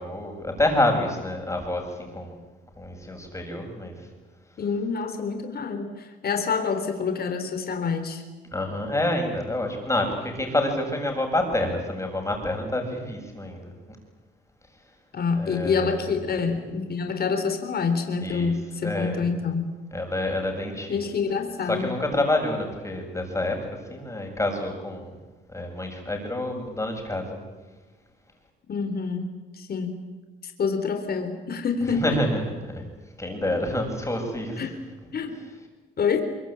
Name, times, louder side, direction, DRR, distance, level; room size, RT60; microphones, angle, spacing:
voice 1, 0.0-2.4 2.8-3.9 8.5-13.7 15.4-16.1 18.2-18.5 18.8-19.2 19.9-21.0 21.7-25.1 25.5-27.4 31.9-32.8 33.2-34.6, left 1 dB, 15° left, 3 dB, 7.5 m, -28 dB
voice 2, 4.6-8.2 15.1-19.7 20.9-21.9 28.7-29.9 30.4-32.2 34.6-34.8 35.1-35.4 36.0-36.2, left 5 dB, 50° left, 7 dB, 3.7 m, -27 dB
23.5 x 23.5 x 9.0 m, 1.2 s
cardioid pair, 90°, 20 cm